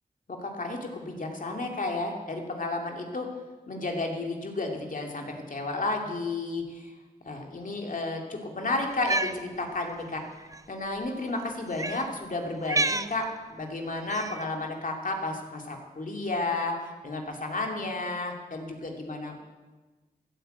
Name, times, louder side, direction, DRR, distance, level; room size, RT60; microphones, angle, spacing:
voice 1, 0.3-3.3 3.7-6.9 7.2-10.2 10.7-19.4, left 2 dB, 60° left, 2 dB, 2.6 m, -32 dB
Cat, 8.9-9.4 10.4-10.6 11.7-12.0 12.6-13.1 14.1-14.4, right 2 dB, 20° right, 0.6 m, -29 dB
15.0 x 9.0 x 7.8 m, 1.2 s
wide cardioid pair, 65°, 15 cm